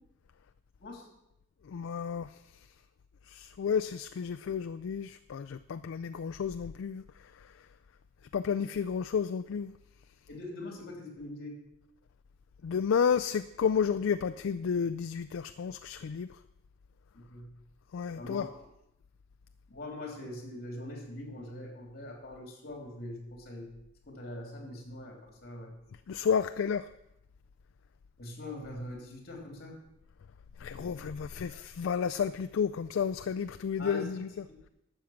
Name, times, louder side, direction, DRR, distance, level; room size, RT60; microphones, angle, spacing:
voice 1, 1.7-2.3 3.3-7.0 8.3-9.7 12.6-16.3 17.9-18.5 26.1-26.9 30.6-34.3, left 7 dB, 75° left, 10 dB, 0.4 m, -31 dB
voice 2, 10.3-11.6 17.1-17.5 18.1-18.6 19.7-23.7 24.1-25.7 28.2-29.8 30.7-31.1 33.8-34.2 34.5-34.6, left 1 dB, 50° left, 0 dB, 3.2 m, -43 dB
12.0 x 7.5 x 5.8 m, 0.86 s
head